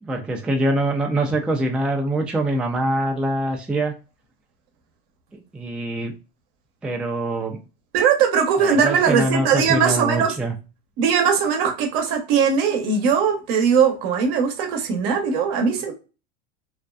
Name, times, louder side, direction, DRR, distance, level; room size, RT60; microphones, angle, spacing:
voice 1, 0.0-3.9 5.5-6.1 6.8-7.6 8.6-10.5, right 1 dB, 5° right, 0.3 m, -24 dB
voice 2, 7.9-10.3 11.0-15.9, right 6 dB, 70° right, 0.8 m, -20 dB
2.5 x 2.2 x 2.2 m
hypercardioid pair, 95°, 31 cm